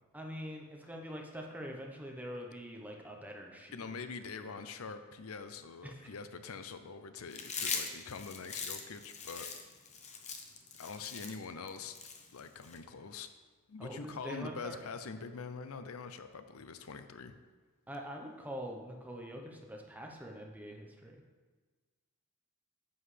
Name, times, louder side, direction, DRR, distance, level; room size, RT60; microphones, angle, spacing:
voice 1, 0.1-3.7 5.8-6.0 13.8-14.8 17.9-21.1, equal, 10° right, 1 dB, 1.0 m, -44 dB
voice 2, 3.7-9.5 10.8-12.0 12.3-13.3 13.7-17.3, left 5 dB, 75° left, 9 dB, 0.6 m, -44 dB
Chewing mastication, 7.3-12.8, left 5 dB, 30° left, 0.9 m, -41 dB
9.7 x 7.8 x 3.4 m, 1.4 s
head